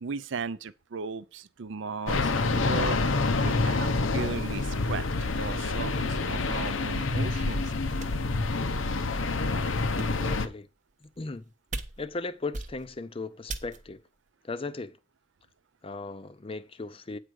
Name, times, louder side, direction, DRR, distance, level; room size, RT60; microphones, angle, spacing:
voice 1, 0.0-3.0 3.3-7.7, right 5 dB, 65° right, 0.5 m, -36 dB
sound 1, 2.1-10.5, left 3 dB, 70° left, 0.7 m, -27 dB
sound 2, 8.0-8.4 9.0-9.1 9.8-10.4 11.0-11.4 11.7-12.2 12.5-13.0 13.5-14.0, right 3 dB, 35° right, 0.8 m, -39 dB
voice 2, 10.2-10.7 11.0-11.5 12.0-14.0 14.4-15.0 15.8-17.2, left 3 dB, 25° left, 0.5 m, -37 dB
8.9 x 4.7 x 6.3 m
head